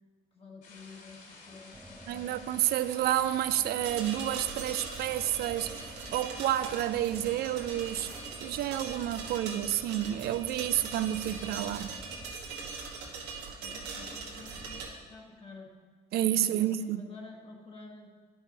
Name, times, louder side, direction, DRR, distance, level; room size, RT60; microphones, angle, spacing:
voice 1, 0.3-2.4 13.6-15.7 16.3-18.1, left 3 dB, 35° left, 1.4 m, -50 dB
sound 1, 0.6-8.3, left 3 dB, 60° left, 2.8 m, -52 dB
sound 2, 1.7-12.3, right 1 dB, 5° right, 0.4 m, -51 dB
voice 2, 2.1-11.9 16.1-17.0, right 12 dB, 70° right, 0.5 m, -30 dB
sound 3, 3.8-14.9, right 4 dB, 85° right, 1.6 m, -41 dB
9.2 x 5.6 x 6.0 m
cardioid pair, 110°, 17 cm